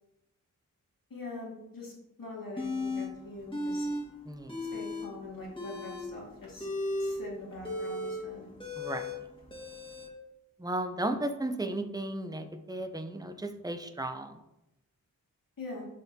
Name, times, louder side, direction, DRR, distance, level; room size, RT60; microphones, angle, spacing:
voice 1, 1.1-1.9 2.2-3.9 4.6-6.7 7.0-8.4 15.6-15.9, left 2 dB, 85° left, -4 dB, 2.2 m, -43 dB
sound 1, 2.6-3.1 3.5-4.0 4.3-5.1 5.5-10.1, left 2 dB, 15° left, 1.9 m, -35 dB
voice 2, 8.8-9.1 10.6-14.4, right 1 dB, 10° right, 7 dB, 0.6 m, -34 dB
10.5 x 4.1 x 2.8 m, 0.90 s
wide cardioid pair, 75°, 33 cm